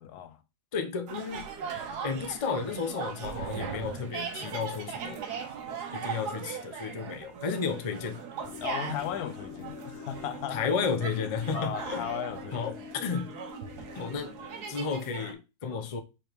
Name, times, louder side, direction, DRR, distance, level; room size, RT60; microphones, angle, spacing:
voice 1, 0.0-0.4 8.6-10.6 11.3-12.6 15.7-15.8, left 10 dB, 80° left, 1.1 m, -36 dB
voice 2, 0.7-1.5 2.0-5.2 5.7-8.2 10.5-12.1 12.5-13.3 13.9-14.3 14.7-16.0, left 5 dB, 40° left, 0.5 m, -33 dB
sound 1, 1.1-15.3, right 6 dB, 85° right, 1.5 m, -39 dB
sound 2, 8.4-15.0, left 8 dB, 60° left, 0.8 m, -46 dB
5.0 x 4.4 x 4.4 m
omnidirectional pair, 1.7 m